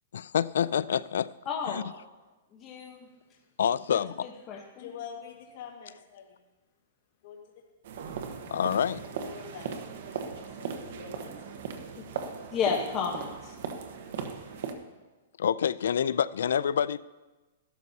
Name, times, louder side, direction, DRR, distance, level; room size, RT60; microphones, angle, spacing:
voice 1, 0.1-1.3 1.7-1.8 3.6-4.3 8.5-9.0 15.4-17.0, left 8 dB, 80° left, 19 dB, 0.3 m, -27 dB
voice 2, 1.5-1.8 2.5-3.1 3.9-4.9 12.0-12.1 12.5-13.5, left 6 dB, 25° left, -1 dB, 1.0 m, -32 dB
voice 3, 4.8-6.4 7.2-7.4 8.9-9.7 10.3-11.6, left 7 dB, 50° left, 0 dB, 1.7 m, -45 dB
sound 1, 7.8-14.7, right 6 dB, 60° right, 1.1 m, -38 dB
14.0 x 12.0 x 2.8 m, 1.2 s
hypercardioid pair, 155°, 0 cm